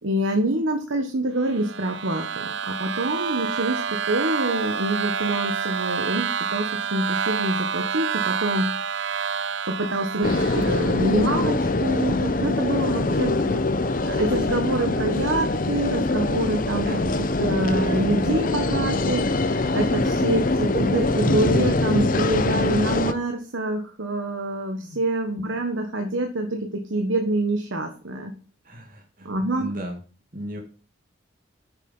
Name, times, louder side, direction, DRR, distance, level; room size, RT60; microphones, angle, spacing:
voice 1, 0.0-8.8 9.7-28.3 29.2-29.7, right 1 dB, 80° right, 4 dB, 1.4 m, -26 dB
sound 1, 1.4-11.1, right 7 dB, 60° right, 0.5 m, -28 dB
sound 2, 10.2-23.1, left 2 dB, 45° left, 0.8 m, -23 dB
voice 2, 12.8-13.2 16.8-17.0 18.4-18.8 24.8-25.0 28.6-30.0 30.3-30.6, equal, 45° right, 3 dB, 1.9 m, -36 dB
8.5 x 7.4 x 5.5 m, 0.37 s
head